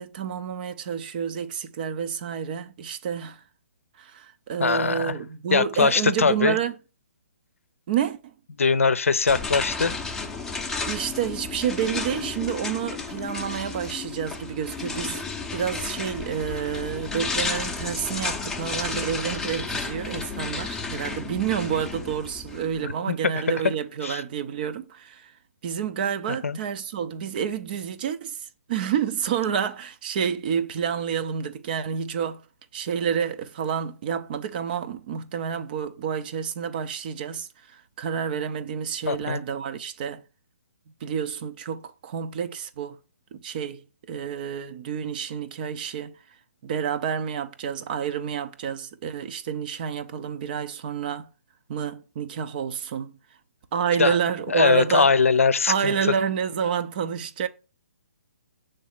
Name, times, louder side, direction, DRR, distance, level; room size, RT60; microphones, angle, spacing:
voice 1, 0.0-3.4 4.0-6.8 7.9-8.3 10.9-15.2 15.5-25.3 25.6-32.4 32.7-40.2 41.0-43.0 43.3-43.8 44.1-46.2 46.6-51.3 51.7-53.1 53.7-55.1 55.7-57.5, right 8 dB, 40° right, 0.6 m, -29 dB
voice 2, 4.6-5.2 5.5-6.6 8.6-9.9 24.0-24.2 26.4-26.6 39.0-39.4 54.0-54.2 54.5-55.9, left 5 dB, 70° left, 0.6 m, -21 dB
sound 1, 9.3-22.8, left 4 dB, 5° left, 0.6 m, -32 dB
7.0 x 3.3 x 5.6 m
figure-of-eight pair, 130°, 8 cm